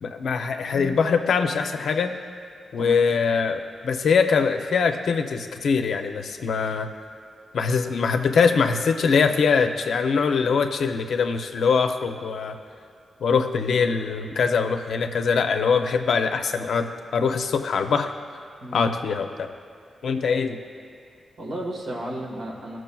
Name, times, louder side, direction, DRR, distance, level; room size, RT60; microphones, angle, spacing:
voice 1, 0.0-2.2 2.7-6.9 7.5-12.6 13.2-16.9 17.1-18.1 18.7-19.5 20.0-20.6, left 5 dB, 80° left, 6 dB, 0.5 m, -22 dB
voice 2, 21.4-22.8, right 1 dB, 90° right, -3 dB, 1.6 m, -33 dB
16.5 x 6.1 x 2.3 m, 2.2 s
cardioid pair, 60°, 0 cm